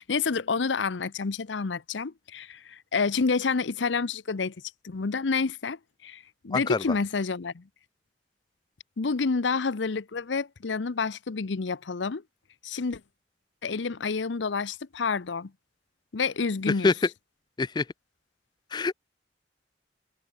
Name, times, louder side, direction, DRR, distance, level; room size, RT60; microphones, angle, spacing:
voice 1, 0.0-4.5 4.8-7.6 9.0-12.2 12.6-13.0 13.6-15.5 16.1-16.9, left 4 dB, 90° left, 0.7 m, -29 dB
voice 2, 6.5-7.0 16.7-17.1 17.6-17.9 18.7-18.9, left 4 dB, 25° left, 0.3 m, -25 dB
head